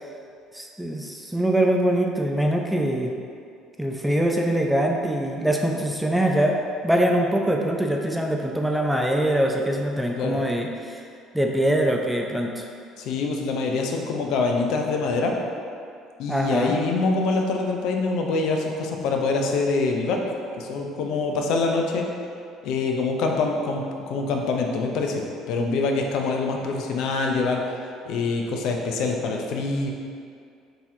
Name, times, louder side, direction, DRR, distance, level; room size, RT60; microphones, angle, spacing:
voice 1, 0.5-3.1 3.8-6.6 6.8-11.0 11.3-12.7 16.3-16.8, right 1 dB, 5° right, 1 dB, 0.3 m, -23 dB
voice 2, 13.0-15.3 16.2-20.2 20.6-22.1 22.6-27.6 28.1-29.9, left 3 dB, 70° left, 2 dB, 0.4 m, -25 dB
3.8 x 2.8 x 2.7 m, 2.3 s
hypercardioid pair, 65°, 0 cm